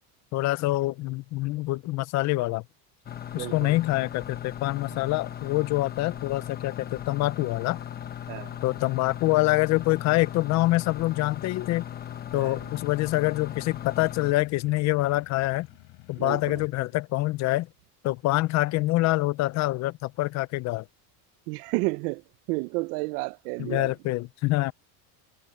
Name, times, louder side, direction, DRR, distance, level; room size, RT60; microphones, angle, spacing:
voice 1, 0.3-2.6 3.3-7.8 8.6-11.9 12.3-15.7 16.1-17.7 18.0-20.9 23.6-24.7, left 19 dB, 40° left, 0.4 m, -25 dB
sound 1, 3.1-14.3, left 10 dB, 20° left, 1.0 m, -38 dB
voice 2, 3.4-3.7 8.3-8.6 12.3-12.6 16.2-16.6 21.5-22.2 22.5-23.9, right 26 dB, 85° right, 0.7 m, -31 dB
sound 2, 9.3-16.7, left 23 dB, 60° left, 4.3 m, -54 dB
cardioid pair, 155°, 45 cm